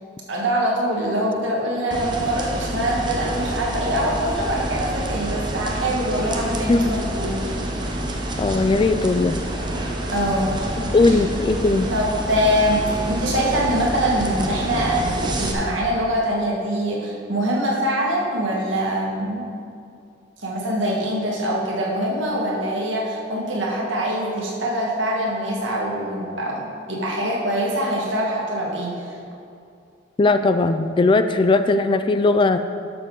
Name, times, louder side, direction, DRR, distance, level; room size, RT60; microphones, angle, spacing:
voice 1, 0.3-7.6 10.1-10.6 11.1-11.2 11.9-19.5 20.4-29.2, equal, 85° right, -2 dB, 1.8 m, -24 dB
sound 1, 1.9-15.5, right 1 dB, 25° right, 0.9 m, -28 dB
voice 2, 8.4-9.4 10.9-11.9 30.2-32.6, left 3 dB, 25° left, 10 dB, 0.3 m, -18 dB
12.0 x 6.8 x 3.9 m, 2.5 s
head